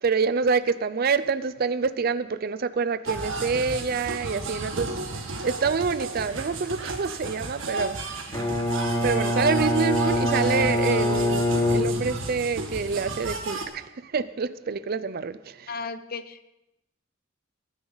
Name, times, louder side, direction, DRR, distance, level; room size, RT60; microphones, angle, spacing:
voice 1, 0.0-8.2 8.9-15.7, right 5 dB, 50° right, 0.5 m, -27 dB
sound 1, 3.1-13.7, right 3 dB, 75° right, 1.8 m, -33 dB
Bowed string instrument, 8.3-12.5, left 1 dB, 15° left, 1.3 m, -25 dB
voice 2, 15.7-16.4, left 4 dB, 50° left, 0.8 m, -35 dB
20.0 x 9.8 x 4.0 m
head